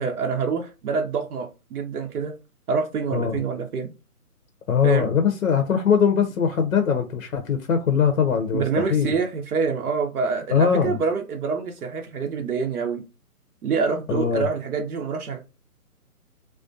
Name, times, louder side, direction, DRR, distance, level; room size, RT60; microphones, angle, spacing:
voice 1, 0.0-2.3 2.7-3.9 4.8-5.1 8.5-13.0 13.6-15.4, right 5 dB, 70° right, 0.6 m, -26 dB
voice 2, 4.7-9.1 10.5-10.9 14.1-14.4, left 7 dB, 65° left, 0.6 m, -21 dB
2.4 x 2.2 x 2.5 m
hypercardioid pair, 160°, 46 cm